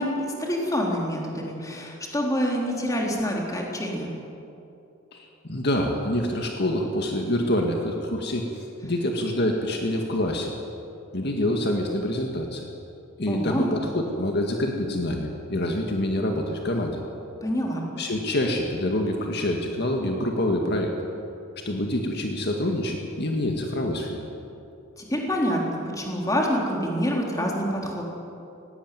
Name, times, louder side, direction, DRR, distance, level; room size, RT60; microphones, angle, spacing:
voice 1, 0.0-4.1 13.3-13.7 17.4-17.9 25.1-28.0, equal, 15° left, -1 dB, 3.6 m, -26 dB
voice 2, 5.1-10.5 11.1-12.7 13.2-17.0 18.0-20.9 21.6-24.2, left 1 dB, 55° left, 2 dB, 1.9 m, -26 dB
19.0 x 17.0 x 9.3 m, 2.7 s
head